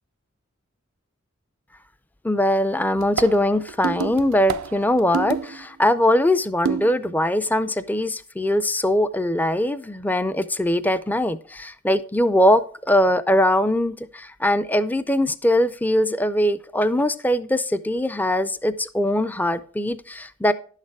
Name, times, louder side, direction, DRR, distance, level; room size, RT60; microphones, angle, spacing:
voice 1, 2.2-12.6 12.9-20.5, left 1 dB, 10° left, 13 dB, 0.4 m, -21 dB
sound 1, 3.0-5.6 6.6-7.1, right 7 dB, 85° right, 0.5 m, -28 dB
11.0 x 6.6 x 4.7 m, 0.43 s
head